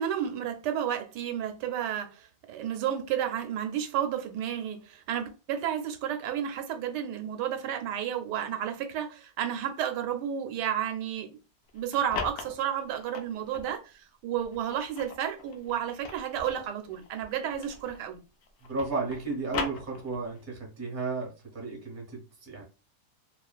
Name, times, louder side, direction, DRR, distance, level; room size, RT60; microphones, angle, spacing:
voice 1, 0.0-11.3 11.7-18.2, right 9 dB, 85° right, 1.2 m, -32 dB
sound 1, 11.7-13.8 14.4-18.1 18.4-20.4, left 5 dB, 85° left, 0.5 m, -39 dB
voice 2, 18.6-22.6, right 3 dB, 15° right, 0.6 m, -34 dB
2.8 x 2.4 x 2.4 m
omnidirectional pair, 1.8 m